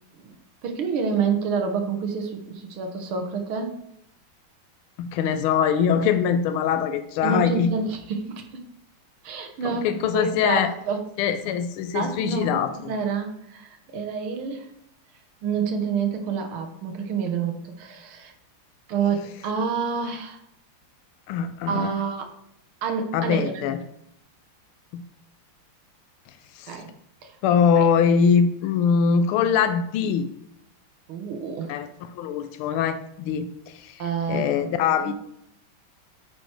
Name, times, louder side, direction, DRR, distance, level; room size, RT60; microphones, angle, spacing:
voice 1, 0.6-3.8 7.2-8.6 9.2-9.9 10.1-11.0 11.9-14.7 15.4-18.3 18.9-20.4 21.7-22.3 22.8-23.7 26.7-26.9 27.2-27.4 27.8-27.9 31.1-31.7 34.0-35.1, right 5 dB, 80° right, 5 dB, 1.9 m, -28 dB
voice 2, 5.0-7.7 9.6-10.7 11.2-12.7 21.3-22.0 23.1-23.8 24.9-25.0 26.6-26.7 27.4-30.3 31.7-31.9 32.1-34.0 34.3-35.1, left 7 dB, 85° left, 9 dB, 1.5 m, -22 dB
9.1 x 4.4 x 4.6 m, 0.74 s
omnidirectional pair, 2.3 m